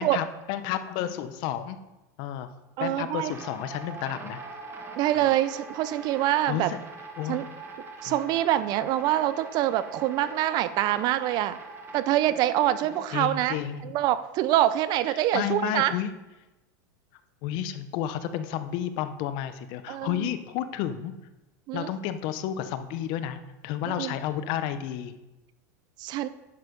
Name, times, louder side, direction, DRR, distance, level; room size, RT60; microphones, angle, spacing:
voice 1, 0.0-1.8 2.2-2.5 2.8-4.4 6.5-6.8 7.2-7.4 8.1-8.2 13.1-14.0 15.1-16.1 17.4-21.1 21.7-25.1, left 10 dB, 55° left, 11 dB, 0.9 m, -31 dB
voice 2, 2.8-3.3 5.0-6.7 7.3-7.5 8.0-11.6 11.9-13.6 13.8-16.0 19.9-20.3 21.7-21.9 23.9-24.2 26.0-26.3, right 13 dB, 50° right, 15 dB, 0.6 m, -25 dB
sound 1, 3.2-13.1, right 3 dB, 25° right, 1.7 m, -42 dB
10.5 x 6.8 x 5.3 m, 1.0 s
supercardioid pair, 125°, 10 cm